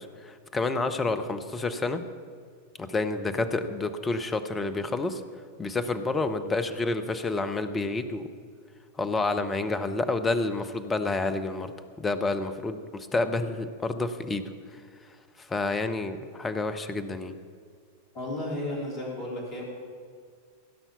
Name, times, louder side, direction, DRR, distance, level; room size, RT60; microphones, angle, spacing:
voice 1, 0.0-2.0 2.8-5.2 5.6-8.3 9.0-11.7 12.0-14.4 14.7-14.8 15.4-17.3, left 3 dB, 15° left, 10 dB, 0.8 m, -29 dB
voice 2, 18.1-19.6, left 1 dB, 30° left, -3 dB, 3.4 m, -33 dB
16.0 x 5.8 x 6.9 m, 2.1 s
figure-of-eight pair, 90°, 0 cm